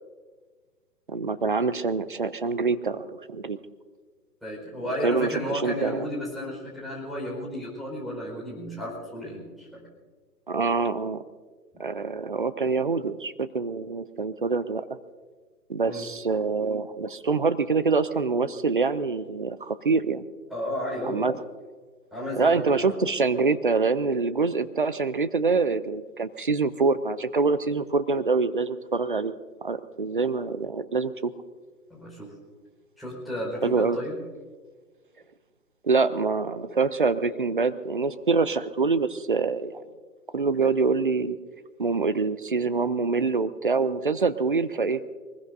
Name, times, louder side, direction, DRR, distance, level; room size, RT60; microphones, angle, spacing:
voice 1, 1.1-3.6 5.0-6.1 10.5-11.2 11.8-14.8 15.7-20.2 21.0-21.3 22.4-29.3 29.6-31.3 33.6-34.0 35.8-39.8 40.3-41.4 41.8-45.0, right 4 dB, 35° right, 13 dB, 0.4 m, -25 dB
voice 2, 4.4-9.8 15.8-16.1 20.5-21.3 22.1-22.9 31.9-32.3 33.0-34.2, left 1 dB, ahead, -6 dB, 4.6 m, -33 dB
23.5 x 20.5 x 2.6 m, 1.4 s
hypercardioid pair, 145°, 48 cm